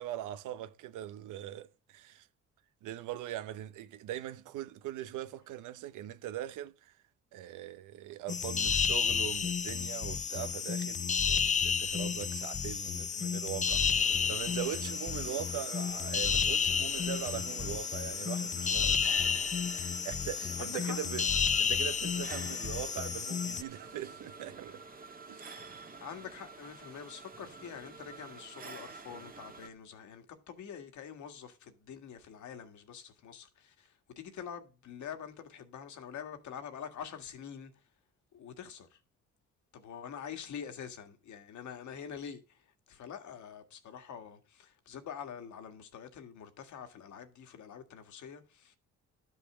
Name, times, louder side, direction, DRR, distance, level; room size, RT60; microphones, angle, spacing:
voice 1, 0.0-2.3 2.8-6.9 7.3-19.1 19.7-21.3 21.6-24.8 25.3-25.5, right 12 dB, 90° right, 0.9 m, -41 dB
sound 1, 8.3-23.6, left 6 dB, 25° left, 0.5 m, -31 dB
sound 2, 13.7-29.7, right 4 dB, 30° right, 1.6 m, -49 dB
voice 2, 20.6-21.0 26.0-37.7 38.3-39.0 39.7-48.8, left 8 dB, 70° left, 1.9 m, -46 dB
12.0 x 5.6 x 6.8 m
cardioid pair, 90°, 30 cm